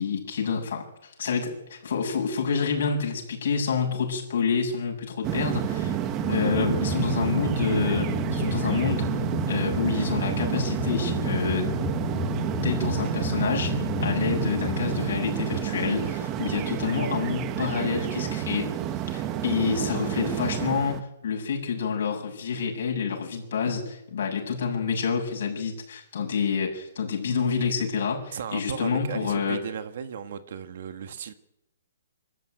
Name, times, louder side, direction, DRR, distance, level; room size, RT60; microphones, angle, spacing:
voice 1, 0.0-6.0 6.3-9.1 9.5-11.7 12.6-18.7 19.1-29.6, left 5 dB, 50° left, 7.5 m, -28 dB
sound 1, 5.2-21.0, right 11 dB, 15° right, 1.0 m, -30 dB
sound 2, 5.8-16.7, left 2 dB, 5° left, 4.8 m, -32 dB
voice 2, 28.3-31.3, right 7 dB, 45° right, 1.7 m, -36 dB
25.0 x 14.5 x 9.4 m
hypercardioid pair, 170°, 0 cm